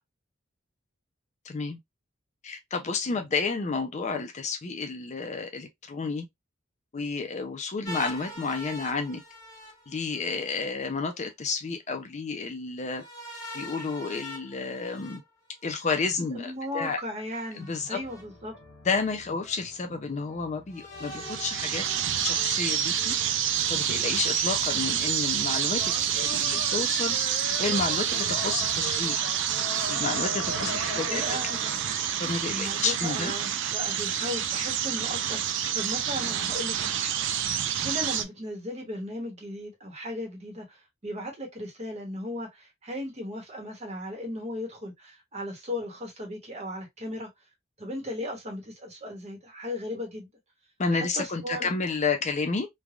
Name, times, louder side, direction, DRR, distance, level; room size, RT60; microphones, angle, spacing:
voice 1, 1.4-1.8 2.4-6.3 6.9-9.2 9.9-13.0 13.5-15.2 15.6-17.0 17.5-18.0 18.8-21.8 22.2-23.2 23.7-27.2 27.6-29.2 29.9-31.2 32.2-33.3 50.8-52.7, left 4 dB, 35° left, 0.4 m, -31 dB
sound 1, 7.8-10.5 12.9-16.0 17.3-18.2 19.0-19.1 20.7-22.7, left 1 dB, 20° left, 1.2 m, -43 dB
voice 2, 16.3-18.5 30.6-31.6 32.5-37.3 37.8-40.8 41.0-47.3 47.8-50.3 50.9-51.7, left 1 dB, 35° right, 1.0 m, -36 dB
sound 2, 18.0-32.2, left 3 dB, 80° left, 1.1 m, -42 dB
sound 3, 21.1-38.2, right 9 dB, 65° right, 0.4 m, -28 dB
3.3 x 2.2 x 2.3 m
head